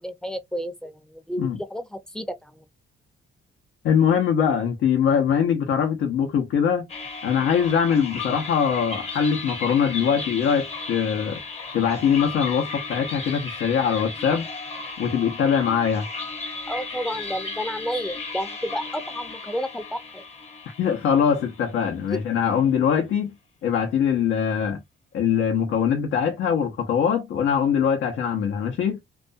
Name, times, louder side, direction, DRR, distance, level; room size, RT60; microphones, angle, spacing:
voice 1, 0.0-2.6 16.7-20.2 22.1-22.2, equal, 5° left, 0.5 m, -31 dB
voice 2, 3.8-6.9 7.2-11.4 11.7-14.5 15.0-16.1 20.8-23.3 23.6-24.8 25.1-29.0, left 7 dB, 70° left, 0.6 m, -22 dB
sound 1, 6.9-22.1, left 4 dB, 30° left, 0.8 m, -35 dB
2.4 x 2.2 x 2.5 m
cardioid pair, 90°, 20 cm